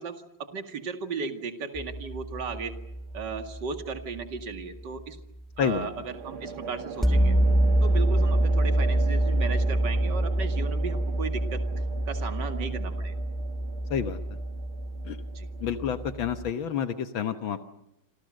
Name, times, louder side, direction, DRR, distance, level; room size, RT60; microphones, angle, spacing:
voice 1, 0.0-2.7 3.1-5.2 5.6-7.4 7.8-11.6 12.1-13.2 15.3-15.5, right 5 dB, 55° right, 7 dB, 2.8 m, -36 dB
sound 1, 1.8-5.0 7.0-16.5, right 1 dB, ahead, 1.4 m, -26 dB
sound 2, 2.5-3.1 5.6-17.0, right 5 dB, 90° right, 2.5 m, -41 dB
voice 2, 15.6-17.6, left 8 dB, 75° left, 9 dB, 2.0 m, -29 dB
27.5 x 27.0 x 6.5 m, 0.80 s
omnidirectional pair, 2.2 m